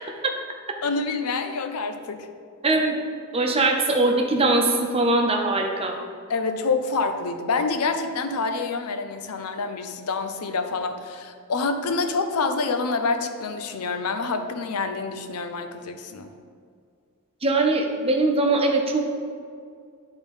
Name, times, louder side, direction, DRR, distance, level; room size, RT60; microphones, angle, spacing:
voice 1, 0.8-2.3 6.3-16.3, left 4 dB, 90° left, 8 dB, 0.6 m, -27 dB
voice 2, 2.6-3.0 3.3-6.0 17.4-19.2, right 2 dB, 25° right, 2 dB, 0.8 m, -21 dB
10.0 x 3.6 x 5.3 m, 2.2 s
head